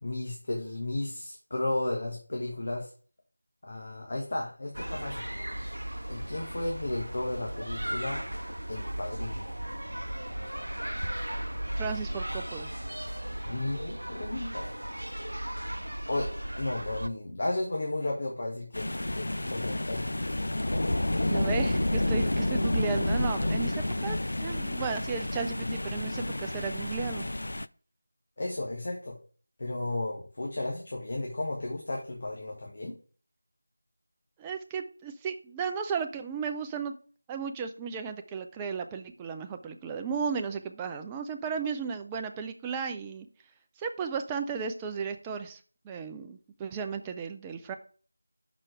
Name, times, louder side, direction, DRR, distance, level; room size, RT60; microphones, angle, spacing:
voice 1, 0.0-2.9 3.6-5.3 6.1-8.2 8.7-9.5 13.5-14.7 16.1-20.5 20.7-21.5 28.4-29.2 29.6-32.9, left 2 dB, 45° left, -1 dB, 1.4 m, -34 dB
sound 1, 4.7-17.1, right 1 dB, 85° right, 0.5 m, -36 dB
voice 2, 11.8-12.7 21.2-27.3 34.4-36.9 37.3-43.3 43.8-47.7, right 6 dB, 10° right, 6 dB, 0.4 m, -35 dB
sound 2, 18.7-27.7, left 1 dB, 65° left, 0.3 m, -29 dB
6.1 x 4.3 x 4.9 m, 0.41 s
figure-of-eight pair, 170°, 0 cm